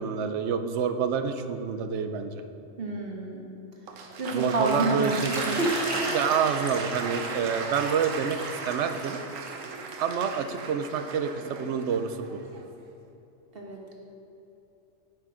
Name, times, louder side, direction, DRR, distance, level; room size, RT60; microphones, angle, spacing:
voice 1, 0.0-2.4 4.3-5.6 6.1-9.2 10.0-12.4, right 7 dB, 70° right, 8 dB, 0.9 m, -28 dB
voice 2, 2.8-3.5 4.2-5.2 5.4-5.7 13.5-13.9, right 2 dB, 50° right, 0 dB, 1.5 m, -28 dB
Applause, 3.9-12.8, right 4 dB, 85° right, 1.2 m, -36 dB
Water / Liquid, 5.0-10.6, right 1 dB, 25° right, 1.4 m, -37 dB
11.0 x 9.4 x 3.7 m, 3.0 s
omnidirectional pair, 1.3 m